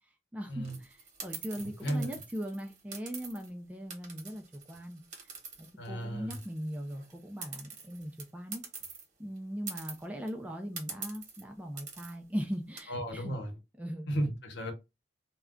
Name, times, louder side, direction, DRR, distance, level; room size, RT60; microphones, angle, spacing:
voice 1, 0.3-5.0 5.6-8.6 9.2-13.3 13.8-14.1, equal, 10° right, 0.3 m, -39 dB
sound 1, 0.6-3.5 3.9-6.0 6.3-9.0 9.4-9.5 9.7-10.3 10.8-11.4 11.8-12.1 12.5-12.8, right 5 dB, 40° right, 1.0 m, -44 dB
voice 2, 5.8-6.4 12.9-13.5 14.1-14.7, right 1 dB, 65° left, 0.9 m, -34 dB
2.3 x 2.2 x 3.5 m
head